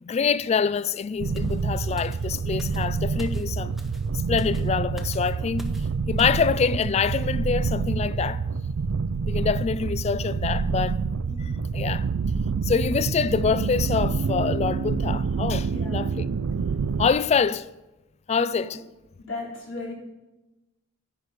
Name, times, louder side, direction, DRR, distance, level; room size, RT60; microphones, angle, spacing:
voice 1, 0.0-3.8 4.3-5.7 6.1-8.4 9.3-11.0 11.4-12.1 12.6-16.3 17.0-17.7 18.3-18.8, left 5 dB, 30° left, 0.3 m, -25 dB
sound 1, 1.2-17.1, right 5 dB, 80° right, 0.4 m, -27 dB
sound 2, 1.3-6.5 6.8-7.0, equal, ahead, 0.8 m, -46 dB
voice 2, 11.2-11.5 15.7-16.0 18.4-18.7 19.2-19.9, left 2 dB, 85° left, 3.5 m, -36 dB
10.5 x 8.3 x 5.0 m
head